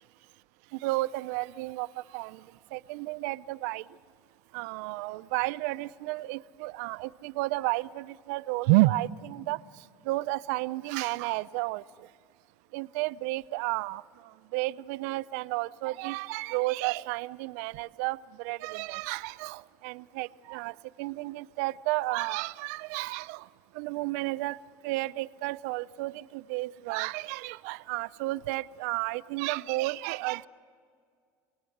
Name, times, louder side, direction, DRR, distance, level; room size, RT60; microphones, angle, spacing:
voice 1, 0.8-2.4 2.7-3.8 4.5-9.6 10.1-11.8 12.7-14.0 14.5-23.5 23.7-24.6 24.8-30.5, right 20 dB, 80° right, 0.6 m, -31 dB
28.0 x 19.5 x 7.9 m
cardioid pair, 125°, 8 cm